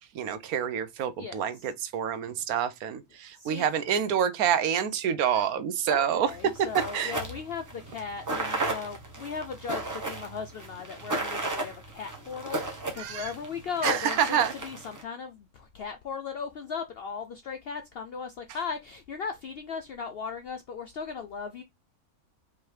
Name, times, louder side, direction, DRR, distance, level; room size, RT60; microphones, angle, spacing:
voice 1, 0.1-6.3 6.9-7.1 13.0-13.3 13.8-14.5, right 8 dB, 80° right, 1.2 m, -27 dB
voice 2, 1.2-1.6 3.4-3.7 5.9-21.6, left 6 dB, 70° left, 0.5 m, -37 dB
sound 1, 6.3-15.0, right 2 dB, 15° right, 0.7 m, -34 dB
5.0 x 2.8 x 3.2 m
omnidirectional pair, 1.6 m